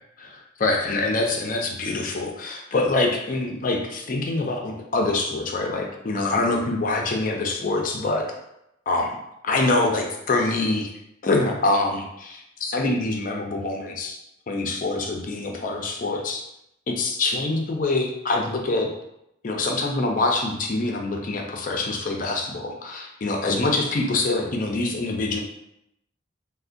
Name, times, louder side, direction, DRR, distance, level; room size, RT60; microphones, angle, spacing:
voice 1, 0.2-8.3 8.9-9.1 9.4-10.9 11.2-14.2 14.5-16.4 16.9-18.9 19.4-25.4, left 2 dB, 45° left, 2 dB, 0.4 m, -25 dB
3.5 x 2.1 x 2.4 m, 0.81 s
head